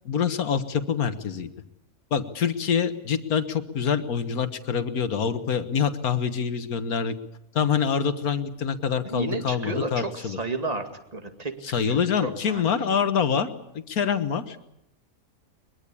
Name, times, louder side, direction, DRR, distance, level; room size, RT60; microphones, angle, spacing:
voice 1, 0.1-1.5 2.1-7.1 7.5-10.4 11.6-13.5 13.7-14.6, left 7 dB, 80° left, 10 dB, 1.8 m, -25 dB
voice 2, 9.1-11.6 11.8-12.6, right 2 dB, 25° right, 6 dB, 2.3 m, -32 dB
22.5 x 22.5 x 8.5 m, 0.81 s
omnidirectional pair, 1.5 m